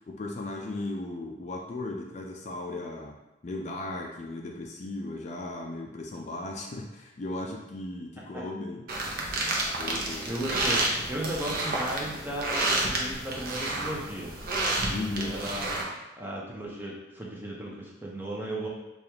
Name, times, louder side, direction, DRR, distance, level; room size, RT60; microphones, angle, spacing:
voice 1, 0.1-3.2 3.4-8.9 9.8-10.3 14.9-15.4, left 2 dB, 40° left, 0 dB, 0.4 m, -36 dB
sound 1, 8.9-15.8, right 2 dB, 50° right, 0.6 m, -30 dB
voice 2, 10.3-14.4 15.3-18.7, right 1 dB, 10° right, -4 dB, 0.7 m, -35 dB
4.9 x 2.3 x 2.9 m, 1.0 s
head